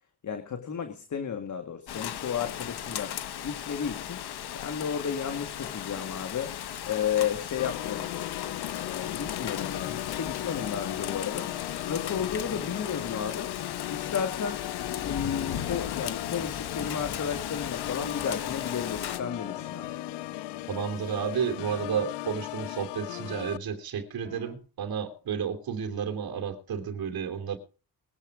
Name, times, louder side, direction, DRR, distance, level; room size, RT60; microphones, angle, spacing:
voice 1, 0.2-3.2 3.4-4.2 4.5-6.6 6.9-8.4 8.7-11.5 11.9-13.5 13.9-20.0, left 7 dB, 45° left, 1.9 m, -33 dB
Rain, 1.9-19.2, left 10 dB, 70° left, 1.5 m, -36 dB
Organ, 7.6-23.6, left 17 dB, 85° left, 0.6 m, -37 dB
sound 1, 16.4-22.1 24.2-24.5, left 4 dB, 20° left, 2.8 m, -51 dB
voice 2, 20.7-27.6, right 7 dB, 60° right, 3.1 m, -32 dB
21.5 x 8.1 x 4.8 m
cardioid pair, 115°, 41 cm